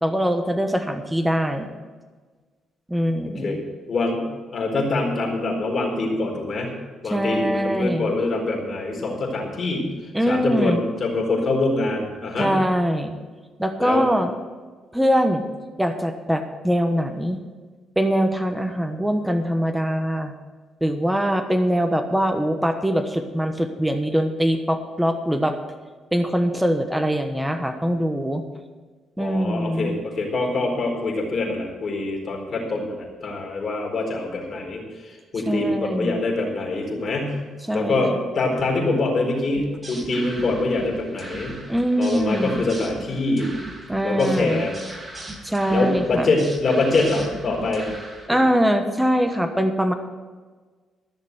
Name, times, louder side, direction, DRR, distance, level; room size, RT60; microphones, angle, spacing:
voice 1, 0.0-1.7 2.9-3.6 7.1-8.1 10.1-10.8 12.4-13.2 13.6-14.3 14.9-15.4 15.8-17.4 18.0-20.3 20.8-25.6 26.1-28.4 29.2-30.0 35.5-36.2 37.7-38.0 41.7-42.7 43.9-44.6 45.4-46.3 48.3-49.9, equal, 5° right, 7 dB, 1.1 m, -22 dB
voice 2, 3.9-6.7 7.0-9.9 10.3-12.6 13.8-14.1 29.2-37.4 37.7-41.6 42.0-43.5 44.0-44.7 45.7-47.9 48.3-48.4, left 2 dB, 45° left, 0 dB, 4.3 m, -24 dB
sound 1, 39.5-48.3, right 1 dB, 20° right, 2.4 m, -38 dB
14.5 x 6.7 x 7.9 m, 1.4 s
cardioid pair, 90°, 0 cm